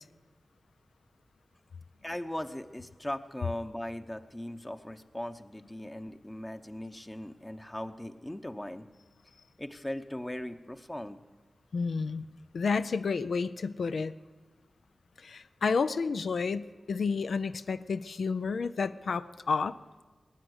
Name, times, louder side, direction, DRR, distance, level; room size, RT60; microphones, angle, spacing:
voice 1, 2.0-8.9 9.6-11.2, left 1 dB, 20° left, 6 dB, 0.8 m, -39 dB
voice 2, 11.7-12.3 12.5-14.1 15.2-19.8, left 5 dB, 85° left, 12 dB, 0.4 m, -30 dB
19.5 x 8.9 x 7.9 m, 1.4 s
cardioid pair, 55°, 0 cm